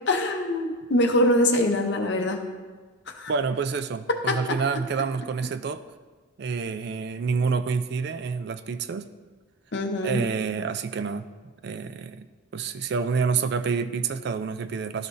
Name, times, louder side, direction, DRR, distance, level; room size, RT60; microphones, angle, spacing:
voice 1, 0.1-2.4 3.2-3.3 4.1-4.6 9.7-10.2, left 1 dB, 55° left, 4 dB, 0.7 m, -23 dB
voice 2, 3.3-5.8 6.4-9.1 10.0-11.3 11.6-12.3 12.5-15.1, right 5 dB, 50° right, 11 dB, 0.3 m, -28 dB
12.0 x 5.6 x 2.6 m, 1.4 s
head